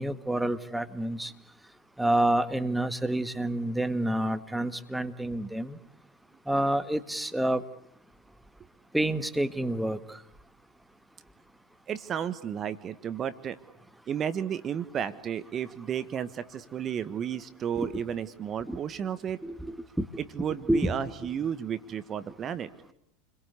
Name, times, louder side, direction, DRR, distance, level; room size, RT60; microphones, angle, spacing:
voice 1, 0.0-1.3 2.0-5.8 6.5-7.6 8.9-10.2 17.8-17.9 18.7-18.8 19.4-20.1 20.7-20.9, right 1 dB, 5° right, 11 dB, 1.8 m, -28 dB
voice 2, 11.9-13.6 14.1-19.4 20.3-22.7, right 8 dB, 35° right, 13 dB, 1.3 m, -33 dB
29.0 x 23.0 x 8.4 m, 0.70 s
hypercardioid pair, 85°, 0 cm